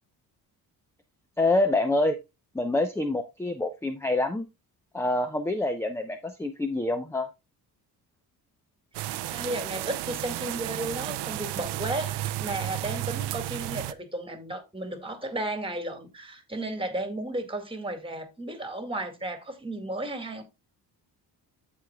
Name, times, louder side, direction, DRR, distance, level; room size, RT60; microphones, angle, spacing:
voice 1, 1.4-2.2 2.5-4.5 4.9-7.3, left 2 dB, 5° left, 0.7 m, -26 dB
voice 2, 8.9-20.4, right 1 dB, 15° right, 2.0 m, -34 dB
sound 1, 8.9-13.9, right 15 dB, 85° right, 0.6 m, -33 dB
14.5 x 4.9 x 2.3 m
cardioid pair, 100°, 40 cm